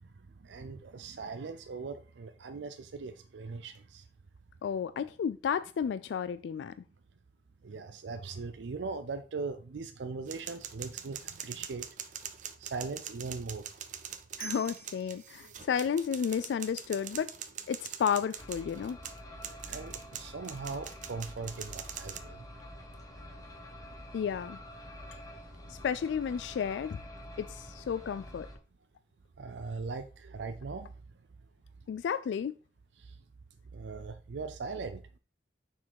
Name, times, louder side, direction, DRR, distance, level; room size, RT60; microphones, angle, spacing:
voice 1, 0.0-4.1 7.6-11.9 12.6-13.7 19.7-22.4 29.4-30.9 33.0-33.2 33.7-35.0, right 4 dB, 85° right, 0.5 m, -40 dB
voice 2, 4.6-6.7 14.4-17.3 17.7-19.0 24.1-24.6 25.7-27.0 27.4-28.5 31.9-32.5, left 7 dB, 80° left, 0.3 m, -32 dB
sound 1, 10.3-22.2, right 9 dB, 45° right, 0.6 m, -43 dB
sound 2, 18.4-28.6, left 1 dB, 20° left, 1.4 m, -47 dB
5.9 x 4.4 x 4.6 m
head